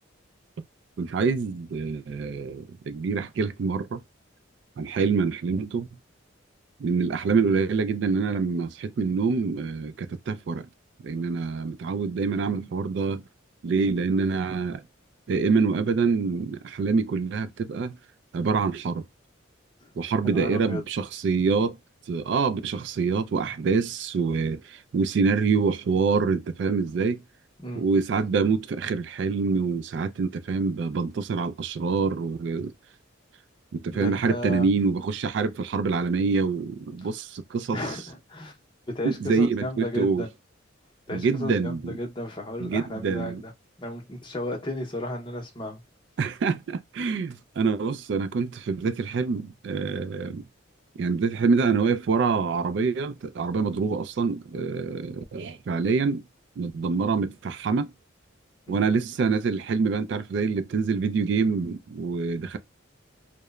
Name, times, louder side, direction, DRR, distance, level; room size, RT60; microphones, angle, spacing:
voice 1, 1.0-4.0 4.8-5.9 6.8-10.7 11.0-13.2 13.6-14.8 15.3-18.0 18.3-19.0 20.0-21.8 22.1-27.2 27.8-32.7 33.7-37.8 39.0-40.2 41.1-42.0 42.6-43.4 46.2-50.4 51.0-56.2 56.6-57.9 58.7-62.6, right 4 dB, 60° right, 0.3 m, -26 dB
voice 2, 20.3-20.8 27.6-27.9 33.9-34.7 37.7-38.6 38.9-40.3 41.1-43.5 43.8-45.8 58.7-58.8, left 1 dB, 25° left, 0.6 m, -34 dB
3.0 x 2.0 x 2.2 m
head